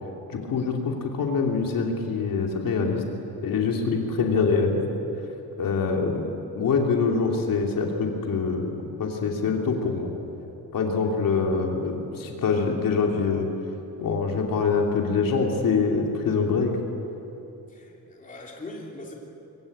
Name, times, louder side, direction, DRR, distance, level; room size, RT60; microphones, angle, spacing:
voice 1, 0.3-3.0 3.4-4.9 5.6-6.3 6.5-10.1 10.7-13.5 14.0-16.7, left 5 dB, 55° left, 1 dB, 3.1 m, -24 dB
voice 2, 12.3-12.6 17.7-19.1, left 1 dB, 20° left, -2 dB, 3.1 m, -41 dB
25.0 x 23.5 x 8.8 m, 3.0 s
cardioid pair, 175°, 39 cm